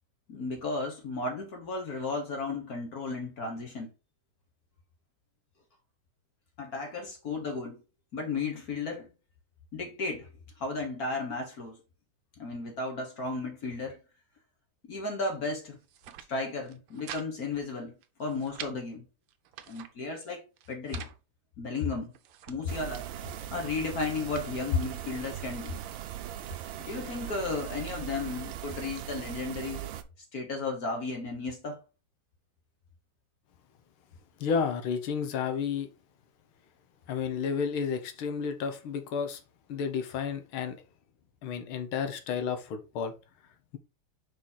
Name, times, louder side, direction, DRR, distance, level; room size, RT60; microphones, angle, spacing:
voice 1, 0.3-3.9 6.6-7.7 8.1-9.1 9.7-10.3 10.6-11.8 12.4-14.0 14.8-15.8 16.3-17.9 18.2-19.0 19.7-21.1 21.6-22.1 22.5-23.1 23.5-25.8 26.8-29.9 30.3-31.8, left 3 dB, 50° left, 1.5 m, -34 dB
sound 1, 15.8-16.3 16.6-17.3 17.5-17.6 18.0-18.7 19.3-19.9 20.6-21.2 21.8-22.6, right 11 dB, 90° right, 1.6 m, -45 dB
sound 2, 22.7-30.0, right 12 dB, 75° right, 1.3 m, -40 dB
voice 2, 34.4-35.9 37.1-39.4 39.7-40.8 41.4-43.1, left 6 dB, 75° left, 1.8 m, -31 dB
5.1 x 5.1 x 3.9 m
omnidirectional pair, 2.4 m